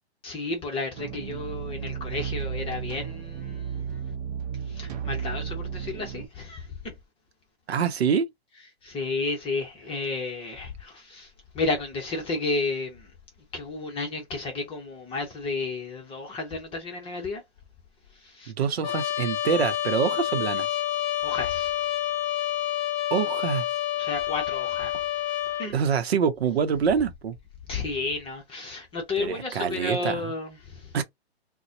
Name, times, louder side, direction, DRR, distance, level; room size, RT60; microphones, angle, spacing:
voice 1, 0.2-4.1 4.7-6.7 8.8-11.3 11.5-13.1 13.5-17.4 18.2-18.5 21.2-21.7 24.0-25.0 25.6-25.7 27.7-30.8, left 3 dB, 15° left, 0.9 m, -32 dB
sound 1, 1.0-6.3, right 8 dB, 40° right, 0.8 m, -34 dB
voice 2, 7.7-8.3 18.5-20.7 23.1-23.7 24.9-25.1 25.6-27.3 29.2-30.3 30.9-31.0, right 7 dB, 70° right, 0.8 m, -25 dB
Trumpet, 18.8-25.7, left 12 dB, 45° left, 0.7 m, -28 dB
3.9 x 2.2 x 2.7 m
hypercardioid pair, 135°, 33 cm